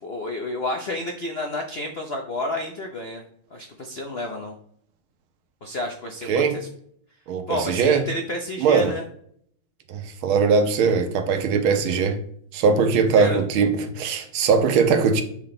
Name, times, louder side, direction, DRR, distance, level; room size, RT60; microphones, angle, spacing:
voice 1, 0.0-3.2 3.5-4.5 5.6-6.7 7.5-9.0 13.2-13.4, left 1 dB, 70° left, 0.5 m, -30 dB
voice 2, 6.3-6.6 7.3-8.0 8.6-8.9 9.9-12.2 12.5-15.2, right 5 dB, 80° right, 1.7 m, -20 dB
7.7 x 6.0 x 3.8 m
omnidirectional pair, 2.3 m